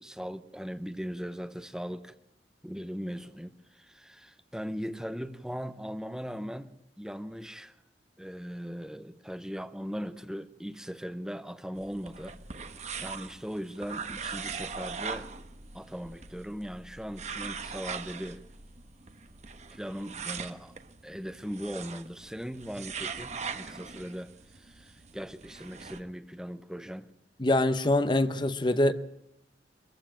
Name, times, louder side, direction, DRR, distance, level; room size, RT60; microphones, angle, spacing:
voice 1, 0.0-2.2 2.6-6.7 7.0-7.8 8.2-12.4 13.0-15.3 15.7-18.4 19.7-20.8 21.0-27.1, equal, 5° right, 0.8 m, -39 dB
sound 1, 11.8-26.0, right 5 dB, 40° right, 1.3 m, -41 dB
voice 2, 27.4-28.9, left 1 dB, 25° left, 0.9 m, -24 dB
24.0 x 15.0 x 9.1 m
head